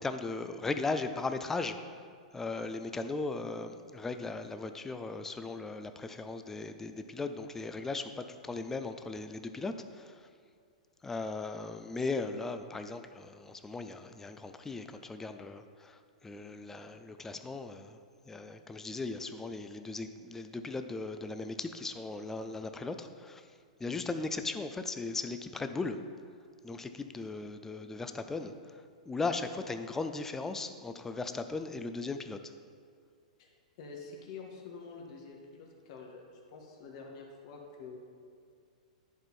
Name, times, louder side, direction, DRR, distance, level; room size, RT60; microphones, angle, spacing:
voice 1, 0.0-1.8 2.3-10.3 11.0-18.0 18.3-23.5 23.8-26.0 26.6-32.4, left 3 dB, 10° left, 8 dB, 0.4 m, -37 dB
voice 2, 33.4-38.0, left 4 dB, 55° left, 1 dB, 1.5 m, -47 dB
10.5 x 4.4 x 4.3 m, 2.2 s
hypercardioid pair, 130°, 4 cm